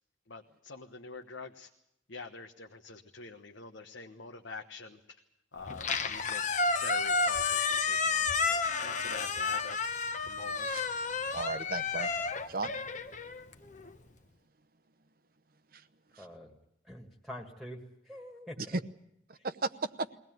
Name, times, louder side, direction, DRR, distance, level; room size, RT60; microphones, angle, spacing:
voice 1, 0.3-1.7 2.1-5.0 5.5-6.4 6.8-9.8 10.3-10.7, left 3 dB, 70° left, 4 dB, 1.2 m, -46 dB
Squeak, 5.7-13.9, left 4 dB, 40° left, 1.1 m, -31 dB
voice 2, 11.3-12.1 12.5-12.7 15.7-15.8 16.1-16.3 18.6-18.7 19.4-20.1, right 3 dB, 45° right, 13 dB, 0.8 m, -35 dB
voice 3, 16.2-16.5 16.8-17.8 18.1-18.8 19.4-19.5, equal, ahead, 1 dB, 1.9 m, -45 dB
22.0 x 18.0 x 9.3 m, 0.82 s
head